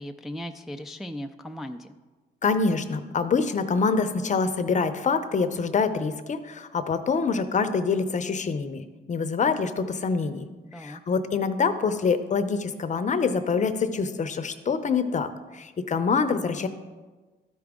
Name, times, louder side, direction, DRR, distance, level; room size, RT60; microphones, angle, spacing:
voice 1, 0.0-1.9 10.7-11.0, equal, ahead, 5 dB, 0.3 m, -37 dB
voice 2, 2.4-10.4 10.8-16.7, left 5 dB, 35° left, 10 dB, 0.7 m, -25 dB
13.0 x 4.9 x 3.6 m, 1.3 s
cardioid pair, 90°, 20 cm